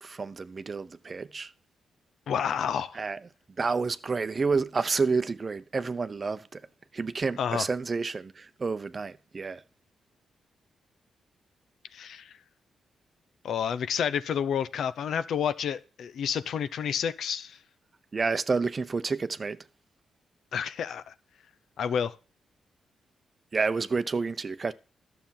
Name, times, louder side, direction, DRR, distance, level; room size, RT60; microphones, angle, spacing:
voice 1, 0.0-1.5 2.9-3.2 3.6-6.6 6.9-9.6 18.1-19.7 23.5-24.7, right 4 dB, 35° right, 0.7 m, -29 dB
voice 2, 2.3-3.0 7.4-7.6 11.9-12.3 13.4-17.6 20.5-21.1 21.8-22.2, left 8 dB, 75° left, 0.8 m, -30 dB
12.0 x 6.9 x 5.8 m
cardioid pair, 95°, 0 cm